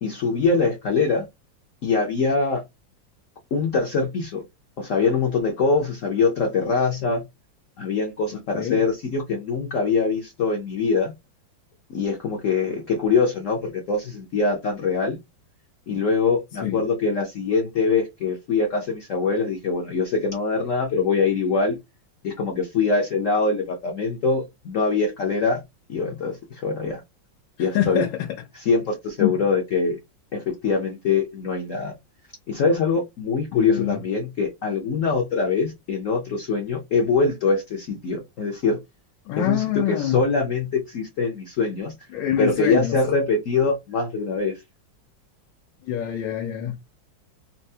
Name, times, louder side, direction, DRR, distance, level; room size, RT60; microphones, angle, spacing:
voice 1, 0.0-1.3 1.8-2.6 3.5-4.4 4.8-7.2 7.8-11.1 11.9-15.2 15.9-21.8 22.2-25.6 25.9-26.4 26.6-27.0 27.6-28.0 28.7-30.0 30.3-31.9 32.5-38.8 39.4-41.9 42.4-44.6, left 4 dB, 65° left, 0.8 m, -23 dB
voice 2, 27.6-28.4 29.2-29.4 33.5-34.0 39.3-40.2 42.1-43.0 45.9-46.8, left 11 dB, 85° left, 1.4 m, -25 dB
4.3 x 2.0 x 2.7 m
omnidirectional pair, 2.0 m